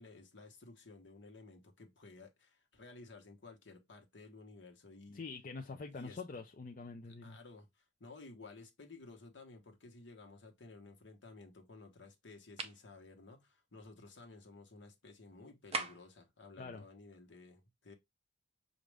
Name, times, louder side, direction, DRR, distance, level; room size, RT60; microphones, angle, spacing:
voice 1, 0.0-5.2 5.9-6.2 7.0-17.9, left 3 dB, 65° left, 1.1 m, -55 dB
voice 2, 5.1-7.4 16.6-16.8, left 4 dB, 45° left, 0.5 m, -45 dB
sound 1, 12.6-12.8 15.7-16.2, right 3 dB, 30° right, 0.5 m, -39 dB
6.1 x 2.6 x 3.3 m
head